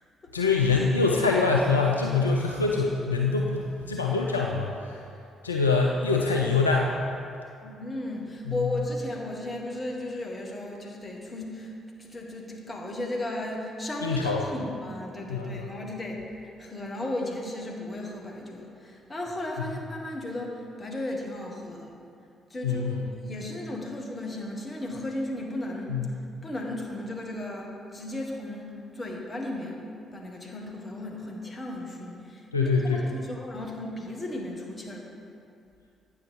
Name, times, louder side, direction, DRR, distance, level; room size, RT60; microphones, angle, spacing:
voice 1, 0.3-5.0 5.4-7.0 8.5-8.6 14.0-14.4 15.3-15.7 22.6-23.0 25.9-26.0 32.5-33.0, left 4 dB, 85° left, -1 dB, 0.3 m, -24 dB
voice 2, 7.6-11.7 12.0-22.0 22.5-22.9 23.2-29.8 30.1-35.1, left 1 dB, 30° left, -1 dB, 1.4 m, -35 dB
8.8 x 6.2 x 3.6 m, 2.6 s
figure-of-eight pair, 45°, 0 cm